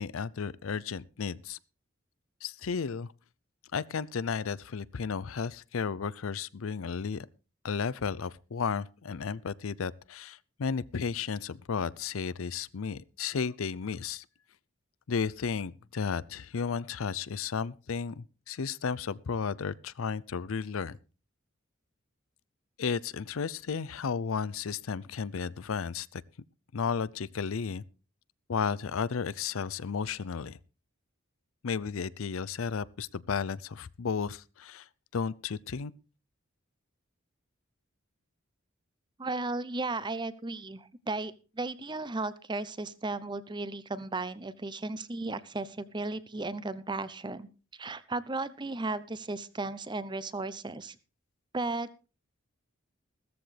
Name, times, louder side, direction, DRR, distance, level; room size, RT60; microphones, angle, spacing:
voice 1, 0.0-1.6 2.4-3.1 3.7-7.3 7.6-14.2 15.1-21.0 22.8-26.2 26.7-27.8 28.5-30.6 31.6-34.9 35.1-35.9, left 6 dB, 90° left, 0.5 m, -33 dB
voice 2, 39.2-51.0 51.5-52.1, right 3 dB, 25° right, 0.7 m, -35 dB
15.5 x 14.0 x 3.3 m
head